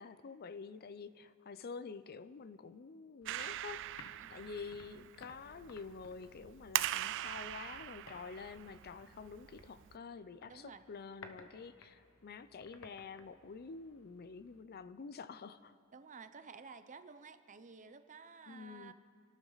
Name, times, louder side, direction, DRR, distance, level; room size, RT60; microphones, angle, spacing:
voice 1, 0.0-4.0 4.3-15.7 18.5-18.9, left 5 dB, 45° left, 14 dB, 0.5 m, -48 dB
sound 1, 3.2-14.6, left 3 dB, 65° left, 1.2 m, -60 dB
Clapping, 3.2-10.0, right 14 dB, 60° right, 0.3 m, -42 dB
voice 2, 4.2-4.5 10.4-10.8 15.9-18.9, right 5 dB, 35° right, 10 dB, 0.7 m, -53 dB
28.5 x 12.5 x 4.0 m, 2.2 s
head